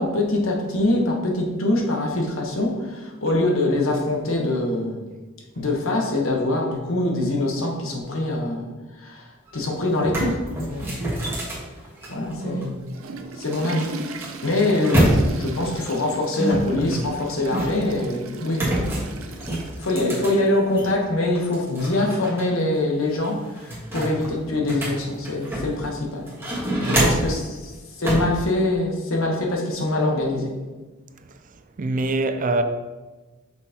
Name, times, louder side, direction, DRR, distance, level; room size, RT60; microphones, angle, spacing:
voice 1, 0.0-5.0 5.6-8.7 9.0-10.4 10.7-11.0 12.1-13.0 13.4-14.1 14.4-18.9 19.8-26.3 26.8-27.7 28.0-30.5, left 2 dB, 85° left, 1.1 m, -24 dB
sound 1, 9.5-9.6 9.9-12.6 13.5-15.6 16.3-18.0 18.5-20.9 21.3-22.4 22.7-22.8 23.2-25.9 26.3-27.4 28.0-28.4, right 1 dB, 10° right, 1.4 m, -26 dB
Water / Toilet flush, 12.6-20.5, right 3 dB, 85° right, 0.6 m, -39 dB
voice 2, 26.8-27.2 31.8-32.6, right 2 dB, 40° right, 0.4 m, -24 dB
6.1 x 5.5 x 2.9 m
head